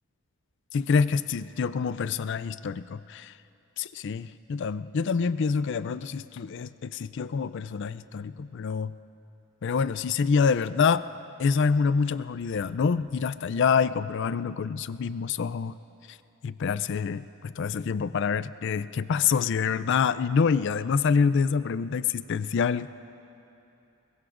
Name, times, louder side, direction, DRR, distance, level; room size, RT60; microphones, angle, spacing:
voice 1, 0.7-3.3 3.8-8.9 9.6-11.1 11.4-15.8 16.1-16.2 16.4-22.9, left 5 dB, 55° left, 15 dB, 0.4 m, -26 dB
22.0 x 21.5 x 2.5 m, 2.9 s
head